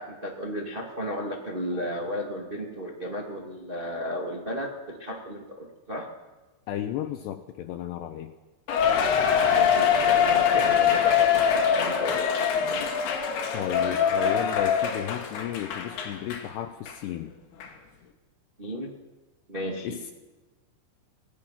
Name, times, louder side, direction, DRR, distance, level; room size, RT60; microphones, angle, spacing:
voice 1, 0.0-6.1 9.1-12.9 18.6-18.9 19.5-20.1, equal, 35° right, -1 dB, 0.8 m, -34 dB
voice 2, 6.7-8.3 13.5-17.3 19.8-20.1, left 11 dB, 80° left, 7 dB, 2.5 m, -33 dB
Cheering, 8.7-16.5 16.9-17.0 17.6-17.7, left 7 dB, 60° left, 3.7 m, -23 dB
27.5 x 18.5 x 6.0 m, 1.2 s
omnidirectional pair, 5.7 m